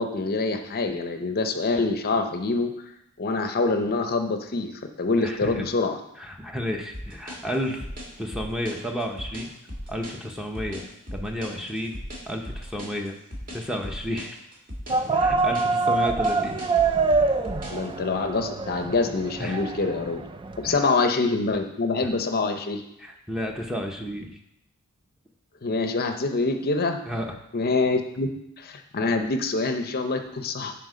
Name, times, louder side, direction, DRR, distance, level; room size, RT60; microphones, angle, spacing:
voice 1, 0.0-2.7 3.2-4.7 5.0-6.0 17.7-20.2 20.6-22.8 25.6-27.0 27.5-28.3 28.6-30.7, left 3 dB, 45° left, 6 dB, 0.6 m, -25 dB
voice 2, 5.2-5.7 6.2-7.9 8.2-9.5 9.9-10.8 11.1-11.9 12.3-13.1 13.5-14.4 15.1-16.6 19.4-19.6 20.7-20.9 22.0-22.1 23.0-24.4 27.0-27.3, equal, 5° right, 2 dB, 0.7 m, -31 dB
sound 1, 6.9-17.8, equal, 40° right, 2.1 m, -37 dB
sound 2, 14.9-20.8, right 4 dB, 20° right, 0.4 m, -25 dB
10.5 x 4.4 x 5.0 m, 0.81 s
head